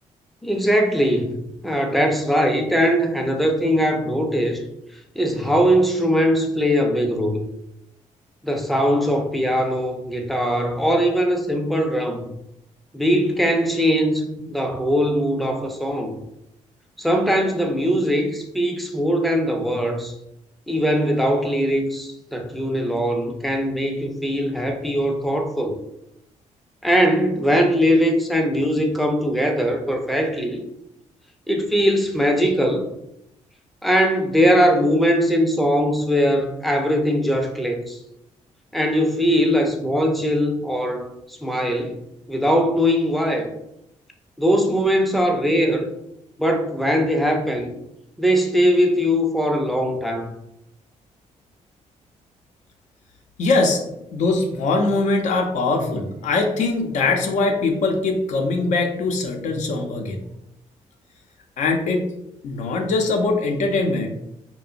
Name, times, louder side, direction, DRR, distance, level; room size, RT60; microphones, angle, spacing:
voice 1, 0.4-4.6 5.2-7.4 8.4-12.2 12.9-16.2 17.0-20.1 20.7-25.8 26.8-30.6 31.5-32.8 33.8-38.0 38.7-42.0 42.3-43.5 44.4-45.9 46.4-47.7 48.2-50.3, equal, ahead, 3 dB, 0.4 m, -21 dB
voice 2, 53.4-53.8 54.1-60.2 61.6-62.1 62.4-64.1, left 3 dB, 70° left, 3 dB, 0.5 m, -22 dB
2.8 x 2.0 x 2.5 m, 0.82 s
cardioid pair, 95°, 13 cm